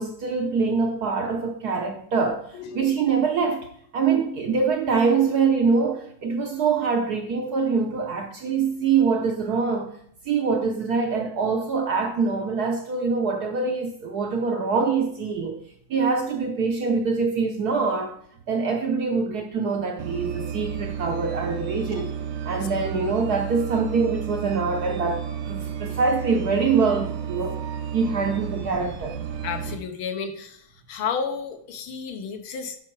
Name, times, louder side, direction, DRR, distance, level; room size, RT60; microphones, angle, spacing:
voice 1, 0.0-2.5 2.7-3.7 3.9-9.9 10.3-15.6 15.9-18.1 18.5-22.1 22.4-27.6 27.9-29.2, right 5 dB, 60° right, 1.1 m, -24 dB
sound 1, 20.0-29.8, right 8 dB, 80° right, 1.8 m, -32 dB
voice 2, 29.4-30.6 30.9-32.8, left 6 dB, 75° left, 1.8 m, -32 dB
10.5 x 4.8 x 4.5 m
omnidirectional pair, 2.4 m